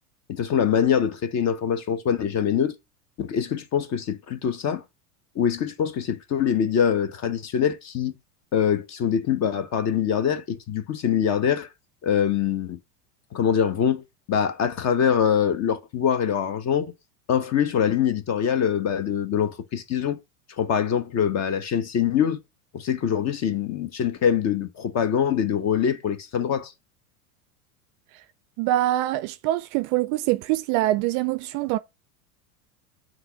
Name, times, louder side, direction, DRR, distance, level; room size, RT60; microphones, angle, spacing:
voice 1, 0.3-2.7 3.2-4.8 5.3-8.1 8.5-11.7 12.0-12.8 13.3-16.9 17.3-20.2 20.6-22.4 22.7-26.7, left 8 dB, 35° left, 1.0 m, -24 dB
voice 2, 28.6-31.8, right 15 dB, 45° right, 0.4 m, -24 dB
7.7 x 3.1 x 5.7 m
hypercardioid pair, 95°, 45 cm